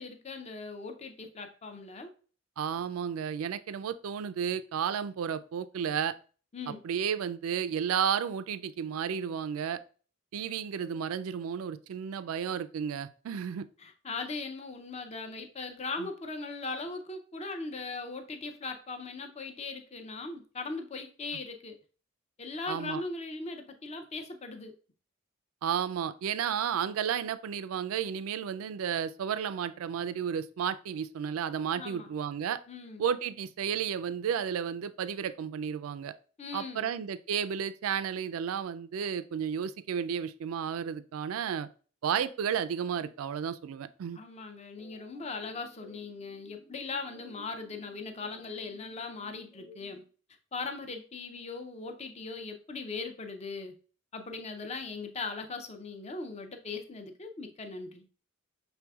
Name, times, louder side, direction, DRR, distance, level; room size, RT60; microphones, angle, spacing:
voice 1, 0.0-2.1 6.5-6.8 13.8-21.8 22.4-24.7 31.7-32.1 32.7-33.0 36.4-36.9 44.1-50.0 50.5-53.8 54.1-58.1, left 3 dB, 30° left, 6 dB, 0.5 m, -39 dB
voice 2, 2.6-6.1 6.8-9.8 10.3-13.7 16.0-16.1 22.7-23.0 25.6-32.6 33.0-36.1 36.5-41.7 42.0-44.2, right 8 dB, 80° right, 13 dB, 0.3 m, -32 dB
sound 1, 44.8-50.1, equal, 10° left, 0.9 m, -56 dB
6.1 x 3.4 x 2.3 m, 0.39 s
head